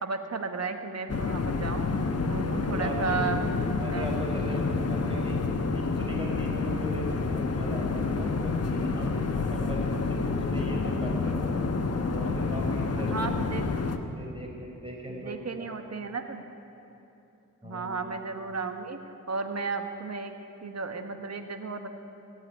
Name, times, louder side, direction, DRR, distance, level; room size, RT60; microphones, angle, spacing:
voice 1, 0.0-1.9 2.2-3.5 3.9-4.1 13.0-13.6 15.1-16.5 17.6-19.0 19.3-20.3 20.6-21.9, right 4 dB, 50° right, 6 dB, 1.5 m, -34 dB
Plane Cabin, 1.1-14.0, left 4 dB, 45° left, 1.2 m, -28 dB
voice 2, 2.5-5.4 5.7-11.7 12.1-13.3 14.1-15.7 17.6-18.0, equal, 15° right, -2 dB, 4.9 m, -38 dB
18.0 x 8.2 x 9.6 m, 2.9 s
cardioid pair, 55°, 34 cm